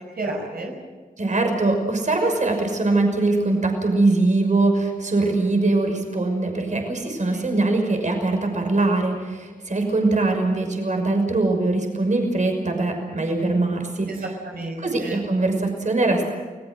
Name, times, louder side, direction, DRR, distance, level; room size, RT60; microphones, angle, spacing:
voice 1, 0.2-0.7 7.0-7.9 14.1-15.3, right 2 dB, 85° right, 0 dB, 5.5 m, -33 dB
voice 2, 1.2-14.2 14.8-16.3, right 2 dB, 55° right, 3 dB, 6.0 m, -22 dB
29.0 x 20.0 x 6.4 m, 1.4 s
wide cardioid pair, 70°, 15 cm